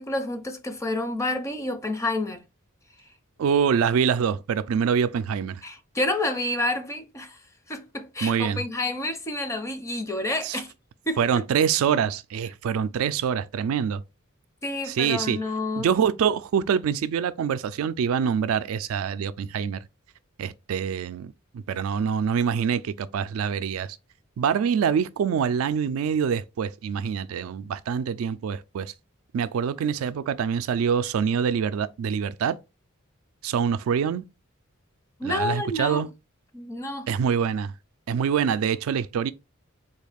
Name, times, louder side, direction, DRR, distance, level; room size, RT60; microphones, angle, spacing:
voice 1, 0.0-2.4 5.6-7.4 7.7-10.7 11.1-11.2 14.6-15.9 35.2-36.1 36.5-37.1, left 2 dB, 15° left, 0.5 m, -29 dB
voice 2, 3.4-5.6 8.2-8.6 10.4-10.6 11.2-14.0 14.9-15.4 15.8-19.8 20.4-24.0 24.4-28.9 29.3-32.6 33.4-34.2 35.2-36.1 37.1-37.7 38.1-39.3, right 7 dB, 85° right, 0.3 m, -25 dB
3.8 x 2.3 x 3.3 m
head